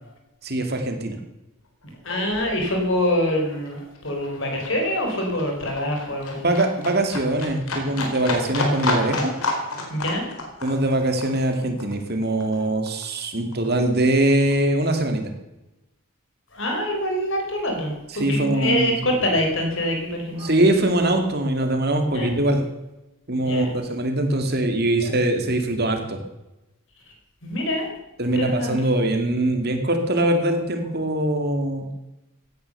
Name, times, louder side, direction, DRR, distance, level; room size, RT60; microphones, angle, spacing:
voice 1, 0.4-1.2 6.4-9.3 10.6-15.3 18.2-19.1 20.4-22.6 23.3-26.2 28.2-31.9, right 1 dB, 45° right, 5 dB, 2.4 m, -22 dB
Livestock farm animals working animals, 1.8-2.0 2.2-13.2 13.5-14.5 14.9-15.0, left 2 dB, 80° left, 4.2 m, -30 dB
voice 2, 1.8-6.5 9.9-10.3 12.5-12.7 16.5-20.6 21.8-22.3 23.4-23.7 25.0-25.1 27.4-27.9 28.2-28.8, left 1 dB, 60° left, 2 dB, 4.7 m, -25 dB
16.5 x 11.0 x 6.8 m, 0.95 s
head